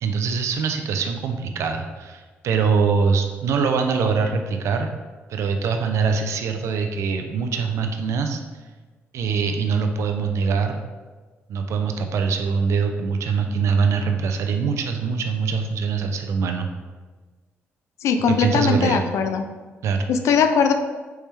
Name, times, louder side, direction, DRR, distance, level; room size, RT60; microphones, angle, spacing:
voice 1, 0.0-4.9 5.3-8.4 9.1-10.8 11.5-16.7 18.4-19.0 19.8-20.1, right 5 dB, 75° right, 5 dB, 0.4 m, -23 dB
voice 2, 18.0-19.4 20.1-20.7, left 6 dB, 75° left, 7 dB, 0.4 m, -20 dB
4.4 x 3.3 x 3.2 m, 1.3 s
cardioid pair, 80°, 5 cm